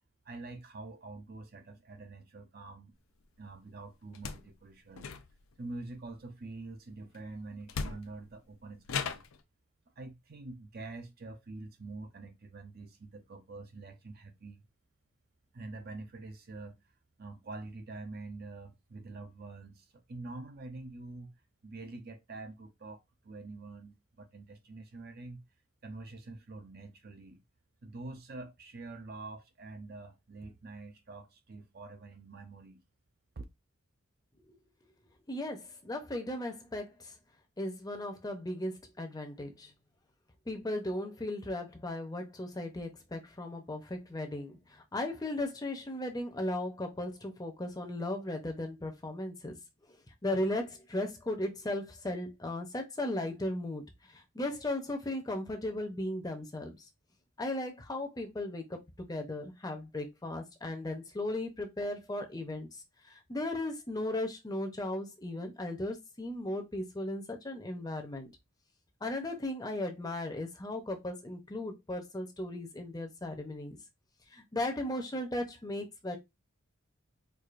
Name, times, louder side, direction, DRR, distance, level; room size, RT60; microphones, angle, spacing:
voice 1, 0.2-2.9 3.4-5.1 5.6-9.2 10.0-14.6 15.5-16.8 17.2-21.3 21.6-25.4 25.8-27.4 27.8-32.8 33.4-33.5, right 3 dB, 45° right, 0.6 m, -46 dB
sound 1, 4.1-4.5 4.9-5.6 7.1-7.2 7.7-8.3 8.9-9.4, left 5 dB, 90° left, 0.5 m, -37 dB
voice 2, 35.3-37.1 37.6-39.7 40.5-49.6 50.2-56.8 57.4-68.3 69.0-73.8 74.3-76.2, left 1 dB, 20° left, 0.6 m, -36 dB
4.7 x 2.5 x 2.4 m
head